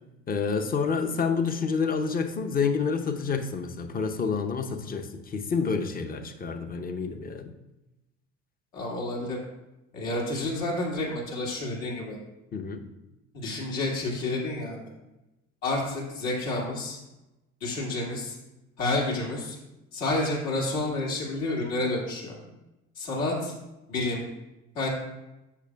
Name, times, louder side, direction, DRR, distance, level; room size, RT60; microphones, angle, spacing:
voice 1, 0.3-7.5 12.5-12.8, left 5 dB, 20° left, 7 dB, 0.8 m, -28 dB
voice 2, 8.7-9.4 9.9-12.2 13.3-14.8 15.6-17.0 17.6-18.4 18.8-19.6 19.9-22.4 23.0-23.5 23.9-24.2 24.7-24.9, left 2 dB, 70° left, -4 dB, 2.4 m, -29 dB
13.0 x 6.5 x 2.3 m, 0.98 s
figure-of-eight pair, 65°, 41 cm